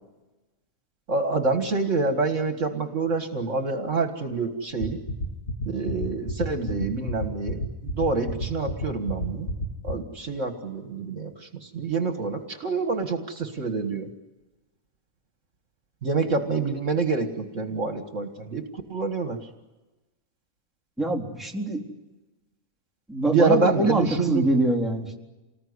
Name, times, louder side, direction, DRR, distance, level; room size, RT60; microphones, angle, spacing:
voice 1, 1.1-5.0 5.7-7.6 7.9-9.5 9.8-14.1 16.0-18.6 18.9-19.5 23.3-24.5, right 4 dB, 60° right, 7 dB, 2.0 m, -26 dB
sound 1, 4.8-9.9, left 2 dB, 50° left, 3.0 m, -29 dB
voice 2, 21.0-21.8 23.1-25.1, right 1 dB, ahead, -3 dB, 3.9 m, -24 dB
28.5 x 20.0 x 9.6 m, 1.1 s
omnidirectional pair, 1.5 m